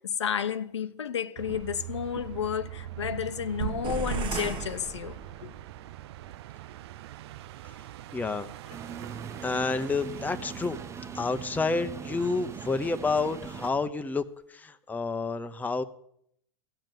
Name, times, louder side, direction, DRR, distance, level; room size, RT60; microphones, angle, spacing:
voice 1, 0.0-5.5, left 8 dB, 90° left, 0.9 m, -32 dB
sound 1, 1.4-13.9, right 12 dB, 70° right, 0.5 m, -42 dB
sound 2, 3.8-5.7, right 4 dB, 35° right, 1.3 m, -35 dB
voice 2, 8.1-8.5 9.4-10.8 11.1-14.2 14.5-15.8, left 3 dB, 10° left, 0.9 m, -29 dB
sound 3, 8.7-13.7, right 6 dB, 20° right, 0.7 m, -41 dB
15.0 x 7.6 x 9.2 m
hypercardioid pair, 105°, 14 cm